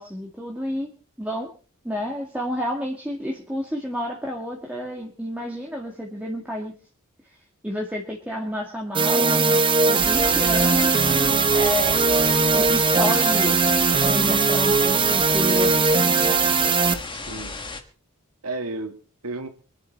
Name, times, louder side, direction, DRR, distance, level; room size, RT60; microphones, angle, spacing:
voice 1, 0.0-1.5 1.8-6.7 7.6-12.0 12.5-15.7, left 1 dB, 5° right, -2 dB, 1.9 m, -30 dB
sound 1, 8.9-16.9, right 4 dB, 20° right, 0.9 m, -19 dB
sound 2, 10.0-17.8, left 3 dB, 20° left, 1.5 m, -34 dB
voice 2, 17.1-17.6 18.4-19.5, right 2 dB, 90° right, 5 dB, 2.2 m, -33 dB
24.5 x 10.5 x 4.1 m, 0.38 s
head